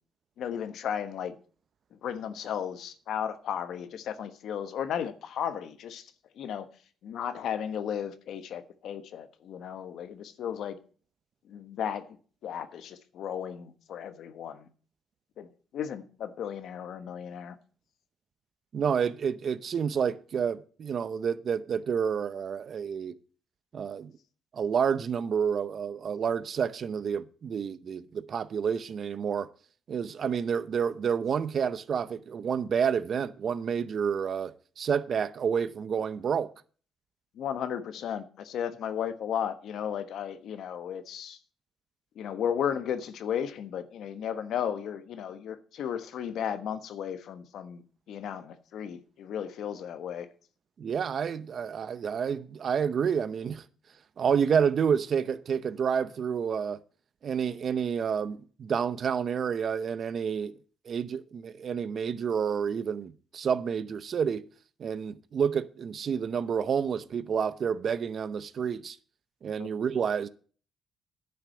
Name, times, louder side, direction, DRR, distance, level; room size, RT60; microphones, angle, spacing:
voice 1, 0.4-1.3 2.0-6.1 6.4-6.7 7.0-10.8 11.5-12.2 12.4-14.7 15.4-17.6 37.4-41.4 42.2-50.3 69.6-69.7, left 8 dB, 75° left, 1.1 m, -34 dB
voice 2, 18.7-23.1 23.7-24.1 24.5-29.5 29.9-36.5 50.8-53.6 54.2-56.8 57.2-60.5 60.9-64.4 64.8-69.0 69.4-70.3, right 7 dB, 55° right, 0.7 m, -29 dB
10.5 x 6.0 x 7.7 m
cardioid pair, 90°, 0 cm